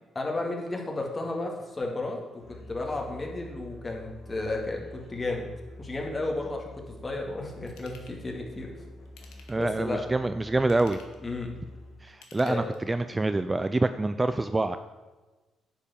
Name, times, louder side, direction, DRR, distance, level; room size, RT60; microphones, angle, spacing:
voice 1, 0.1-5.5 5.8-8.8 9.6-10.0 11.2-11.5 12.4-12.6, left 2 dB, 25° left, 0 dB, 2.1 m, -33 dB
Musical instrument, 2.4-12.2, left 1 dB, 60° left, 2.3 m, -47 dB
Ratchet pawl / Tools, 7.7-8.2 9.0-9.7 10.5-11.2 12.1-13.0 13.5-13.6, left 5 dB, 85° left, 1.4 m, -53 dB
voice 2, 9.5-11.0 12.0-14.8, right 2 dB, 15° right, 10 dB, 0.3 m, -26 dB
9.8 x 4.6 x 7.2 m, 1.3 s
cardioid pair, 90°, 0 cm